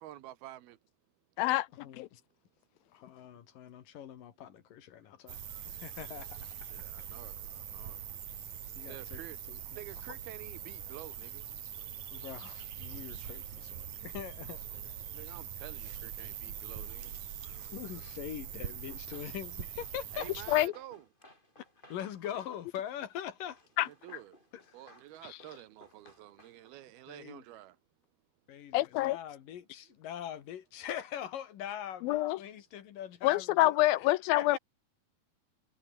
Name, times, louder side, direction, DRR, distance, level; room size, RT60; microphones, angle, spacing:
voice 1, 0.0-0.8 6.7-8.0 8.9-9.4 9.7-11.4 15.1-17.1 20.1-21.1 23.8-24.4 24.7-27.7, right 14 dB, 80° right, 3.3 m, -49 dB
voice 2, 1.4-2.1 20.5-20.7 23.8-23.9 28.7-29.2 32.0-32.4 33.2-34.6, left 17 dB, 80° left, 2.3 m, -27 dB
voice 3, 2.9-5.4 5.7-6.5 8.8-9.2 9.5-9.6 12.1-14.6 17.7-20.3 21.9-23.6 27.1-27.4 28.5-33.8 34.4-34.6, left 10 dB, 65° left, 3.3 m, -42 dB
sound 1, 5.3-20.7, right 9 dB, 55° right, 3.4 m, -43 dB
Run, 18.7-26.9, left 1 dB, 10° left, 7.2 m, -60 dB
omnidirectional pair, 4.4 m